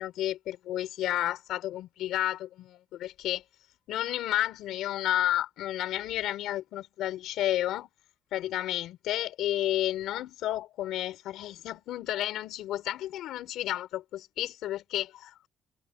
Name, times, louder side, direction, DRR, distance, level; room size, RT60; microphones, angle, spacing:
voice 1, 0.0-3.4 3.9-7.9 8.3-15.5, left 13 dB, 85° left, 5.3 m, -31 dB
cardioid pair, 90°, 0 cm